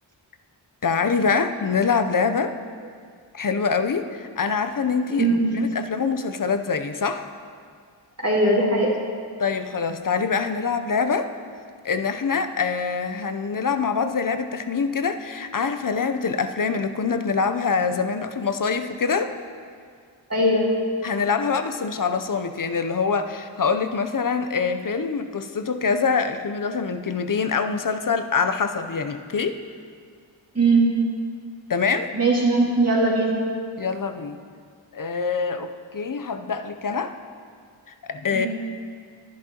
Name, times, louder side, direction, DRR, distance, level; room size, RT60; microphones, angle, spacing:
voice 1, 0.8-2.6 3.3-5.3 5.5-7.3 9.4-11.3 11.8-19.3 21.0-29.6 31.7-32.1 33.8-34.4 34.9-37.1 38.0-38.5, left 5 dB, 40° left, 8 dB, 0.7 m, -24 dB
voice 2, 5.1-5.7 8.2-9.0 20.3-20.8 30.5-31.2 32.1-33.5 38.3-38.5, right 2 dB, 30° right, -4 dB, 2.2 m, -20 dB
11.0 x 11.0 x 2.9 m, 2.1 s
cardioid pair, 40°, 49 cm